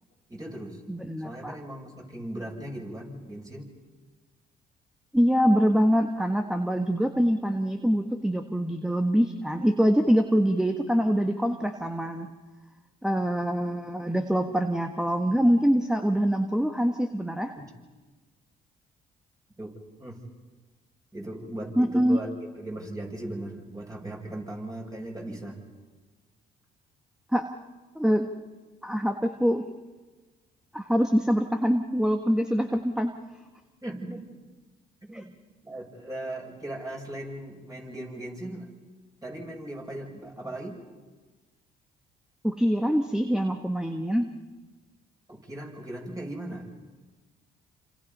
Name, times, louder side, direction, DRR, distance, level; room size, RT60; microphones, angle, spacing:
voice 1, 0.3-0.8 1.2-3.7 19.6-19.7 20.0-20.2 21.1-22.3 22.6-25.6 33.8-34.3 35.1-35.3 35.6-38.7 39.2-40.8 45.3-46.7, right 1 dB, 20° right, 0 dB, 7.3 m, -38 dB
voice 2, 0.9-1.6 5.1-12.3 13.0-17.5 21.8-22.2 27.3-27.5 27.9-28.3 28.8-29.6 30.7-33.1 35.1-35.2 42.4-44.3, equal, 5° right, 5 dB, 1.6 m, -24 dB
28.0 x 27.0 x 5.6 m, 1.3 s
supercardioid pair, 70°, 19 cm